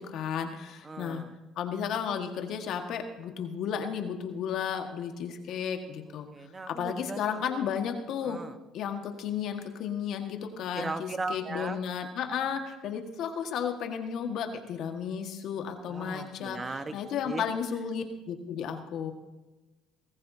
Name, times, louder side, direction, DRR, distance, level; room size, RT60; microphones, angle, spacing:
voice 1, 0.0-1.2 1.5-6.3 6.8-8.4 8.7-16.6 16.9-19.1, left 7 dB, 65° left, 5 dB, 1.6 m, -33 dB
voice 2, 0.8-1.3 6.3-7.4 8.2-8.6 10.7-11.8 15.9-16.9 17.2-17.4, right 3 dB, 25° right, 9 dB, 1.2 m, -37 dB
20.5 x 14.0 x 2.8 m, 1.1 s
supercardioid pair, 80°, 0 cm